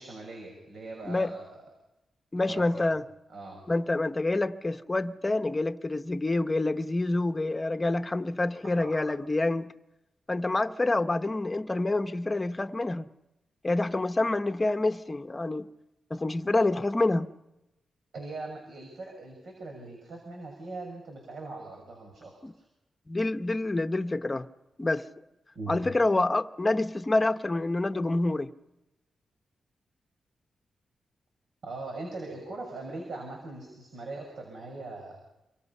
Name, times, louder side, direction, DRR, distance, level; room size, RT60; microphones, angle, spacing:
voice 1, 0.0-1.5 2.4-2.9 3.3-3.6 8.6-9.0 18.1-22.3 25.5-25.8 31.6-35.2, right 3 dB, 70° right, 6.3 m, -41 dB
voice 2, 1.0-1.5 2.3-3.0 3.7-9.7 10.3-13.1 13.6-15.7 16.1-17.3 22.4-22.5 23.1-24.5 24.8-25.0 25.7-28.5, left 2 dB, 20° left, 0.9 m, -27 dB
28.5 x 23.5 x 5.6 m
wide cardioid pair, 120°, 0 cm